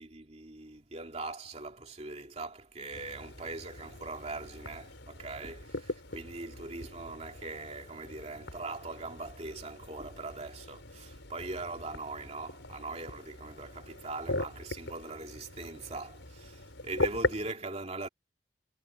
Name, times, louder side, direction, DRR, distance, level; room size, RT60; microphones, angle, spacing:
voice 1, 0.0-18.1, right 3 dB, 35° right, 3.0 m, -41 dB
sound 1, 2.9-17.5, left 2 dB, 90° left, 5.2 m, -40 dB
head